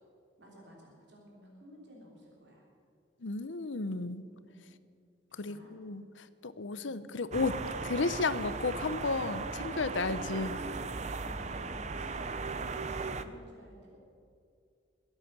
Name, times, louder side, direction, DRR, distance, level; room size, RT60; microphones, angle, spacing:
voice 1, 0.4-2.6 4.3-4.9 5.3-5.7 6.6-7.1 11.1-14.0, equal, 60° right, -2 dB, 3.5 m, -53 dB
voice 2, 3.2-4.2 5.3-10.6, left 3 dB, 75° left, 14 dB, 0.7 m, -33 dB
sound 1, 7.3-13.2, right 4 dB, 35° right, 0.6 m, -37 dB
22.0 x 8.3 x 6.8 m, 2.4 s
head